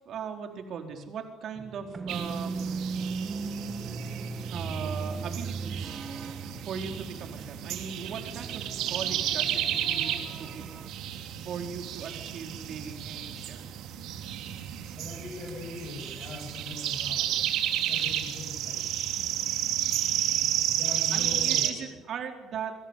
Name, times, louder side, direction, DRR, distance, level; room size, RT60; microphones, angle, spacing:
voice 1, 0.0-3.0 4.5-6.1 6.7-10.6 11.4-13.6 21.1-22.7, right 6 dB, 45° right, 4 dB, 4.4 m, -39 dB
sound 1, 1.6-10.9, right 4 dB, 25° right, 1.4 m, -38 dB
sound 2, 2.1-21.7, right 11 dB, 70° right, 3.1 m, -32 dB
voice 2, 15.0-17.4 17.9-18.8 19.1-19.2 20.7-21.8, left 3 dB, 40° left, -3 dB, 7.8 m, -41 dB
27.5 x 24.5 x 8.4 m, 0.94 s
cardioid pair, 170°, 0 cm